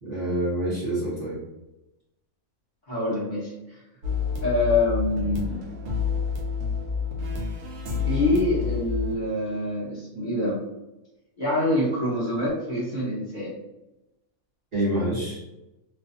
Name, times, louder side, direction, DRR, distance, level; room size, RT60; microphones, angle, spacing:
voice 1, 0.0-1.4 14.7-15.4, right 1 dB, 35° right, -8 dB, 0.8 m, -27 dB
voice 2, 2.9-3.8 4.4-5.6 8.0-10.6 11.4-13.6, left 2 dB, 45° left, -8 dB, 0.7 m, -25 dB
sound 1, 4.0-9.1, left 5 dB, 90° right, 1.1 m, -29 dB
2.5 x 2.3 x 2.5 m, 0.95 s
omnidirectional pair, 1.5 m